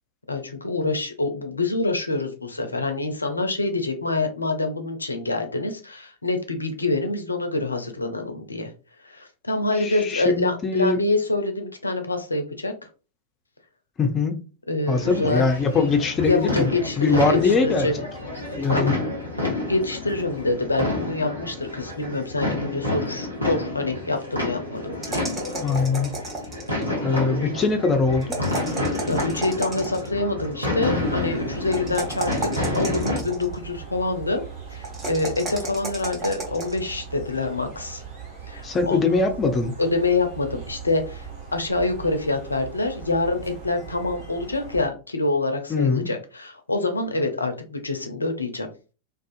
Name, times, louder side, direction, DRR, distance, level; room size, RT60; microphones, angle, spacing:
voice 1, 0.3-8.7 9.0-12.9 14.7-15.5 16.2-17.9 18.7-19.0 19.7-25.3 29.1-34.4 34.7-38.0 38.5-39.0 39.8-41.3 41.5-48.7, left 2 dB, 80° left, 0.4 m, -26 dB
voice 2, 9.8-11.0 14.0-14.4 14.9-16.7 17.0-18.0 18.6-19.0 25.5-26.1 27.0-28.4 38.6-39.7 45.7-46.1, left 4 dB, 25° left, 0.5 m, -22 dB
sound 1, 14.9-33.2, left 2 dB, 90° right, 0.8 m, -29 dB
sound 2, 25.0-26.8 28.2-30.1 31.7-33.5 34.8-36.8, right 2 dB, 20° right, 1.0 m, -32 dB
sound 3, 30.8-44.9, right 6 dB, 50° right, 1.5 m, -40 dB
2.4 x 2.3 x 2.4 m
figure-of-eight pair, 90°, 0 cm